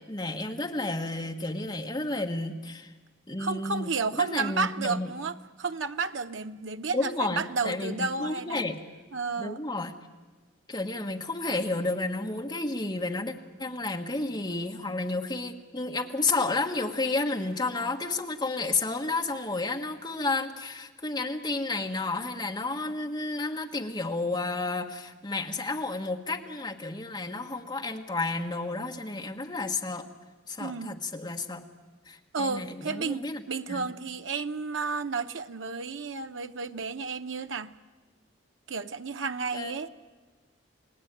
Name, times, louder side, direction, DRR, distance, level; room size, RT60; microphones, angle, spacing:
voice 1, 0.0-2.9 3.3-5.1 6.9-8.8 9.4-9.9 10.7-13.3 13.6-30.1 30.5-31.6 32.0-33.4 33.7-33.9 39.5-39.7, left 2 dB, 20° left, 3 dB, 1.5 m, -31 dB
voice 2, 3.4-8.7 9.1-9.6 30.6-30.9 32.3-37.7 38.7-39.9, right 4 dB, 75° right, 9 dB, 0.8 m, -32 dB
29.5 x 18.5 x 9.2 m, 1.3 s
head